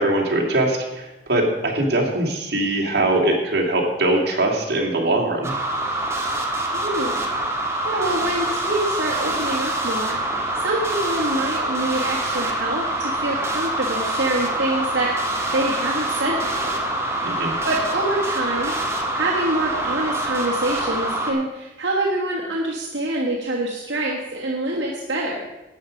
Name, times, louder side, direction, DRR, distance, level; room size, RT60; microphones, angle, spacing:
voice 1, 0.0-5.5 17.2-17.5, right 1 dB, 60° right, -1 dB, 2.4 m, -21 dB
sound 1, 5.4-21.3, right 1 dB, 15° right, 1.4 m, -25 dB
voice 2, 6.8-7.2 7.5-10.2 10.6-15.1 15.5-16.9 17.6-25.4, right 1 dB, 75° right, -3 dB, 1.5 m, -26 dB
11.5 x 8.1 x 5.1 m, 1.0 s
head